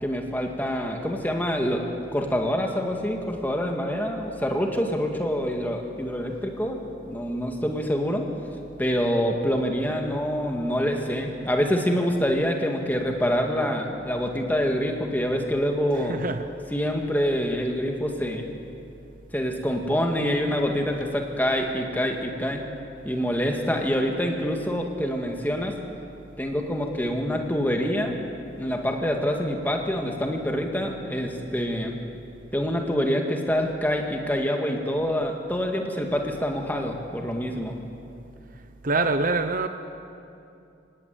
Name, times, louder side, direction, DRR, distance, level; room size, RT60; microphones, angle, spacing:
voice 1, 0.0-1.8 2.1-8.3 8.8-16.2 16.7-18.5 19.3-22.6 23.0-25.8 26.4-28.2 28.6-31.9 32.5-37.8, equal, 10° left, 2 dB, 2.0 m, -26 dB
voice 2, 15.9-16.5 38.8-39.7, right 3 dB, 45° right, 8 dB, 0.9 m, -25 dB
25.5 x 18.5 x 9.3 m, 2.7 s
head